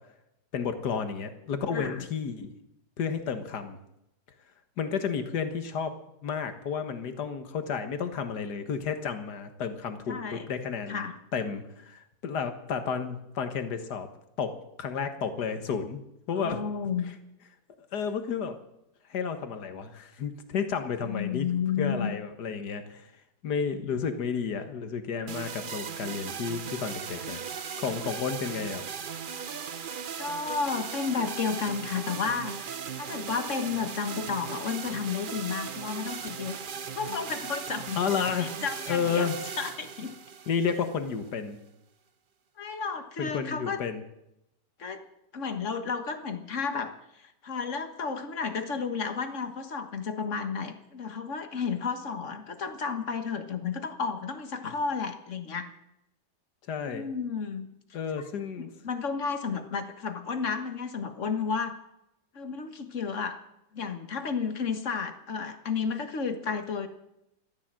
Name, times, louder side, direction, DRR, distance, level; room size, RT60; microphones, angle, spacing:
voice 1, 0.5-2.5 3.0-3.8 4.8-6.0 6.2-11.0 11.3-14.1 14.4-16.0 16.3-16.6 17.9-18.6 19.1-21.5 21.8-23.1 23.4-27.5 27.8-28.8 38.0-38.5 38.9-39.4 40.5-41.6 43.2-44.0 56.7-57.1 57.9-58.7, left 6 dB, 65° left, 8 dB, 2.0 m, -31 dB
voice 2, 1.7-2.0 10.1-10.5 10.9-11.2 16.4-17.1 21.0-22.1 30.2-36.6 37.0-38.0 38.3-39.3 39.6-40.1 42.6-43.8 44.8-45.0 45.3-55.7 56.9-57.7 58.6-61.8 62.3-63.4 63.7-66.9, left 5 dB, 45° left, 8 dB, 1.7 m, -32 dB
sound 1, 25.3-41.3, right 7 dB, 55° right, 0.6 m, -38 dB
15.0 x 12.5 x 7.6 m, 0.85 s
omnidirectional pair, 1.9 m